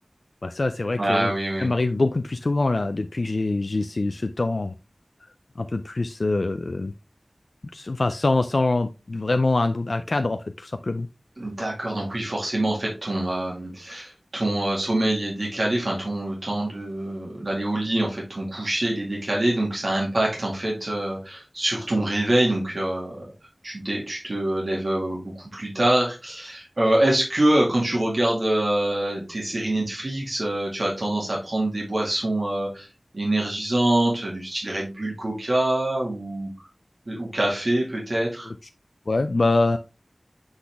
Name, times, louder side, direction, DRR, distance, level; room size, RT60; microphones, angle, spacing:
voice 1, 0.4-1.3 1.6-4.7 5.6-6.9 7.7-11.1 39.1-39.8, left 2 dB, 80° left, 8 dB, 0.3 m, -24 dB
voice 2, 1.0-1.7 11.4-23.2 23.6-32.9 33.1-36.7 37.1-38.5, right 1 dB, 75° right, -3 dB, 2.1 m, -25 dB
7.8 x 4.0 x 3.4 m, 0.30 s
wide cardioid pair, 50°, 0 cm